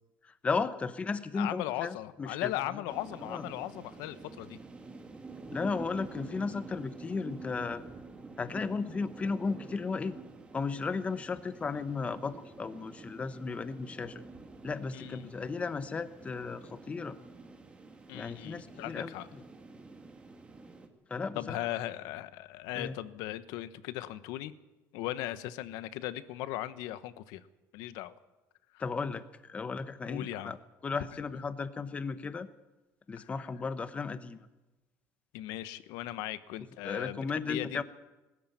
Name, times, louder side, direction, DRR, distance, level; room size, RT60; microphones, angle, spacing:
voice 1, 0.2-2.8 3.3-3.4 5.5-7.8 8.4-10.2 10.5-14.2 14.6-17.2 18.1-19.4 21.1-21.6 22.7-23.0 28.8-30.6 30.8-32.5 33.1-34.5 36.8-37.8, left 4 dB, 20° left, 13 dB, 1.1 m, -35 dB
voice 2, 1.3-4.6 14.9-15.3 18.1-19.3 21.3-24.5 24.9-27.5 27.7-28.1 28.7-28.8 30.1-30.5 33.1-33.3 35.3-37.8, left 14 dB, 90° left, 14 dB, 1.1 m, -38 dB
sound 1, 2.9-20.9, right 3 dB, 15° right, 2.1 m, -48 dB
20.5 x 13.5 x 9.3 m, 1.1 s
cardioid pair, 150°, 6 cm